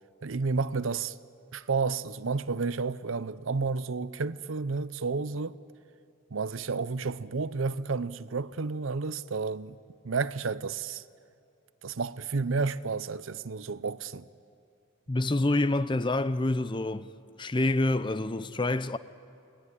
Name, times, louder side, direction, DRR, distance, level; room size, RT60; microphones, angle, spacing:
voice 1, 0.2-1.2 1.5-5.6 6.3-9.8 10.0-11.0 11.8-14.3, right 4 dB, 75° right, 0.7 m, -31 dB
voice 2, 15.1-17.1 17.4-19.0, left 2 dB, 25° left, 0.6 m, -27 dB
29.5 x 20.0 x 9.9 m
head